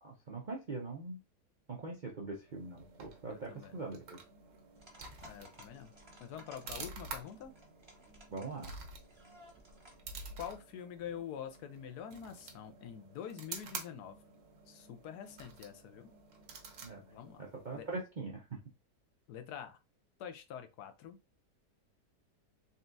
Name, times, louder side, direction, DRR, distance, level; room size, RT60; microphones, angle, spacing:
voice 1, 0.0-1.2 1.7-4.2 8.3-8.7 16.8-17.0 17.4-18.6, right 3 dB, 65° right, 0.4 m, -42 dB
sound 1, 2.5-18.0, right 4 dB, 85° right, 1.6 m, -50 dB
voice 2, 3.3-3.8 5.2-5.9 6.2-7.5 10.4-14.2 14.7-16.1 17.0-17.4 17.7-17.9 19.3-19.8 20.2-21.2, left 8 dB, 70° left, 1.1 m, -46 dB
sound 2, 4.8-10.1, equal, 20° right, 0.8 m, -58 dB
4.2 x 3.4 x 2.6 m
omnidirectional pair, 1.9 m